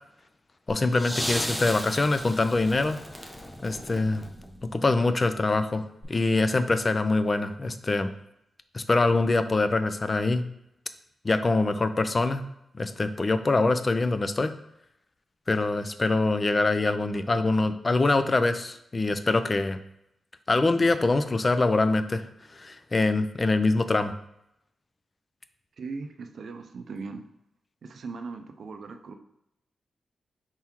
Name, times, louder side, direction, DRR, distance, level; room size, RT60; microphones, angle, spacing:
voice 1, 0.7-3.0 3.6-4.2 4.7-5.8 6.1-8.1 8.7-10.4 11.2-12.4 12.7-14.5 15.5-19.8 20.5-22.2 22.5-24.1, left 3 dB, 40° left, 10 dB, 0.4 m, -24 dB
sound 1, 0.7-4.9 6.0-6.1, equal, 5° left, 0.7 m, -35 dB
voice 2, 25.8-27.2 27.8-29.1, right 4 dB, 70° right, 6 dB, 0.4 m, -38 dB
4.5 x 3.5 x 2.9 m, 0.80 s
cardioid pair, 50°, 0 cm